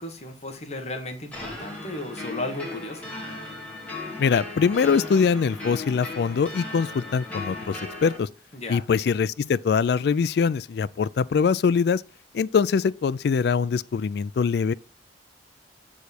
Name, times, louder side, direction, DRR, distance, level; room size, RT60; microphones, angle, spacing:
voice 1, 0.0-3.1 8.5-8.8, left 2 dB, 40° left, 1.5 m, -35 dB
sound 1, 1.3-8.2, left 2 dB, 10° left, 3.0 m, -37 dB
voice 2, 4.2-8.3 8.7-12.0 12.3-14.7, left 6 dB, 65° left, 0.3 m, -23 dB
8.0 x 4.8 x 4.2 m
head